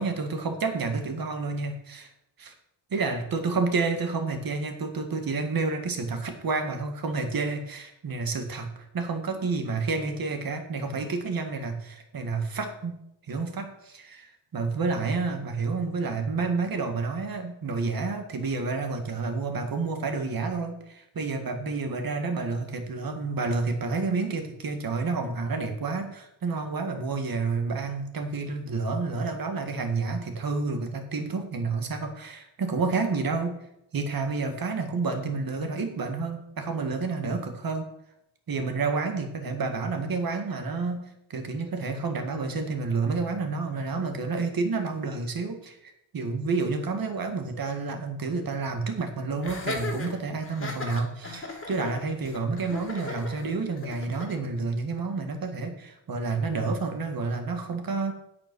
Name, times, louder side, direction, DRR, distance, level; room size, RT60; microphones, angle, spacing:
voice 1, 0.0-2.1 2.4-2.5 2.9-13.0 13.3-33.6 33.9-37.9 38.5-41.0 41.3-58.1, right 4 dB, 45° right, 5 dB, 1.9 m, -29 dB
Laughter, 49.4-54.4, left 2 dB, 25° left, 2.4 m, -36 dB
9.7 x 8.4 x 6.2 m, 0.80 s
wide cardioid pair, 160°, 46 cm